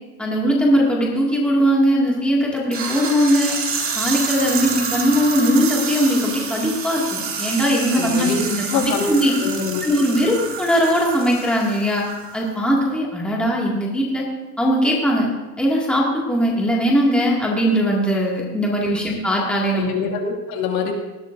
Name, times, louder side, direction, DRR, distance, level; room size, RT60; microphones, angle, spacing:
voice 1, 0.2-3.6 4.0-9.3 9.8-12.0 12.3-14.2 14.6-15.3 15.6-19.9, equal, ahead, -4 dB, 2.1 m, -20 dB
sound 1, 2.7-12.5, right 5 dB, 25° right, 2.2 m, -28 dB
voice 2, 7.9-8.4 8.7-9.1 9.4-9.8 19.7-20.9, left 6 dB, 50° left, 1 dB, 2.4 m, -24 dB
19.5 x 16.0 x 2.6 m, 1.1 s
supercardioid pair, 160°, 50 cm